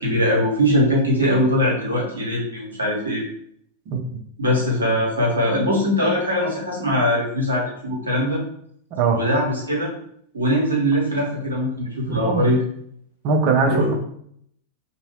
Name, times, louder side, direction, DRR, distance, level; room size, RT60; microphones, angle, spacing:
voice 1, 0.0-3.2 4.4-8.4 9.1-9.9 10.3-12.6 13.7-13.9, equal, 75° right, -4 dB, 1.1 m, -21 dB
voice 2, 12.1-12.4 13.2-13.9, right 4 dB, 45° right, 3 dB, 0.5 m, -20 dB
2.7 x 2.6 x 3.0 m, 0.68 s
figure-of-eight pair, 90°, 0 cm